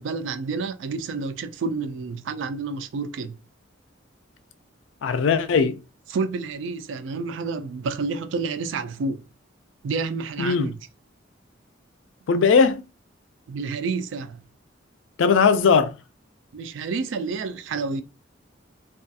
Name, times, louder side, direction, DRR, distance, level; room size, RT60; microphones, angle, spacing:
voice 1, 0.0-3.4 6.1-9.2 9.8-10.8 13.5-14.4 16.5-18.0, right 4 dB, 75° right, 0.3 m, -29 dB
voice 2, 5.0-5.8 10.4-10.7 12.3-12.9 15.2-15.9, left 5 dB, 75° left, 0.4 m, -19 dB
2.3 x 2.3 x 2.6 m
head